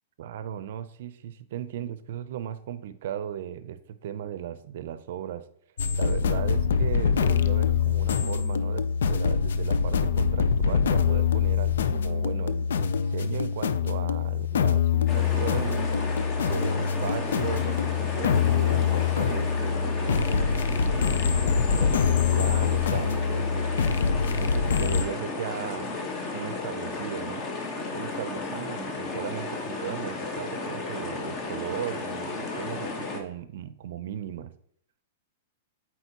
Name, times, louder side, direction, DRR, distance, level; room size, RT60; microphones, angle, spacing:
voice 1, 0.2-5.5 5.9-24.0 24.3-26.0 26.3-27.5 27.9-34.5, right 10 dB, 65° right, 13 dB, 0.5 m, -37 dB
sound 1, 5.8-25.0, left 6 dB, 85° left, 0.4 m, -24 dB
sound 2, 15.1-33.2, left 3 dB, 35° left, 1.1 m, -34 dB
8.1 x 4.2 x 2.8 m, 0.65 s
hypercardioid pair, 145°, 0 cm